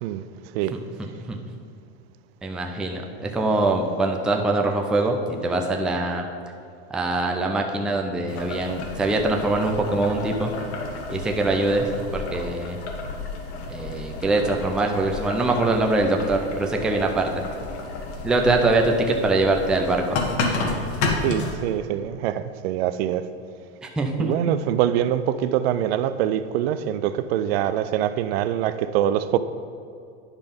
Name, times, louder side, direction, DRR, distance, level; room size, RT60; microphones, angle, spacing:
voice 1, 0.7-1.4 2.4-6.3 6.9-10.5 11.1-12.8 13.7-17.3 18.2-20.2 24.0-24.3, right 2 dB, 5° right, 0.3 m, -23 dB
Boiling, 8.3-21.5, left 3 dB, 75° left, 1.3 m, -31 dB
voice 2, 21.2-23.3 24.2-29.4, right 11 dB, 65° right, 0.5 m, -24 dB
9.9 x 3.5 x 5.2 m
supercardioid pair, 130°, 33 cm